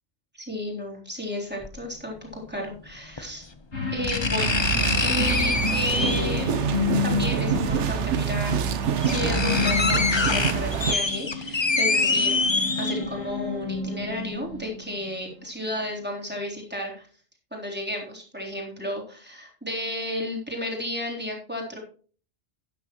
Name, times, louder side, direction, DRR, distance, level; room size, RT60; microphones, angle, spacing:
voice 1, 0.5-3.5 3.9-4.7 5.0-6.5 7.0-8.6 9.1-17.1 17.5-21.8, left 1 dB, 10° right, -2 dB, 3.6 m, -33 dB
sound 1, 1.6-1.7 3.2-3.3 4.0-6.4 7.8-7.9 8.5-8.6 8.8-13.3 13.7-13.8, left 3 dB, 25° left, 0.8 m, -25 dB
sound 2, 3.7-15.5 15.9-16.0, left 4 dB, 70° left, 3.5 m, -31 dB
sound 3, 4.4-11.0, right 7 dB, 80° right, 1.1 m, -26 dB
12.0 x 10.0 x 3.1 m, 0.41 s
omnidirectional pair, 1.2 m